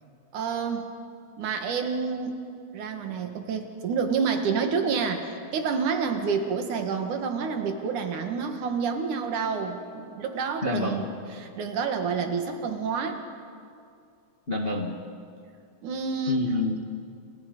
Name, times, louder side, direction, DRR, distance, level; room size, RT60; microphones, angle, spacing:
voice 1, 0.3-0.9 1.4-2.4 2.7-11.1 11.4-13.2 15.8-16.5, right 5 dB, 90° right, 5 dB, 3.3 m, -28 dB
voice 2, 10.6-11.1 14.5-14.9 16.3-16.8, left 2 dB, 25° left, 1 dB, 1.3 m, -28 dB
29.5 x 27.5 x 5.4 m, 2.4 s
omnidirectional pair, 3.4 m